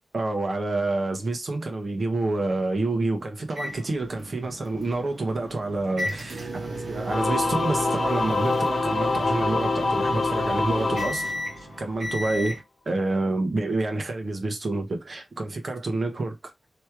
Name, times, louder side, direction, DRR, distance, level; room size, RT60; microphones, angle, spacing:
voice 1, 0.1-11.3 11.8-12.6 12.8-16.4, right 2 dB, 55° right, 1.2 m, -28 dB
sound 1, 3.5-12.6, right 1 dB, 80° right, 1.4 m, -34 dB
Singing / Musical instrument, 7.1-11.9, left 3 dB, 65° left, 0.9 m, -26 dB
3.2 x 3.1 x 4.6 m
wide cardioid pair, 120°, 0 cm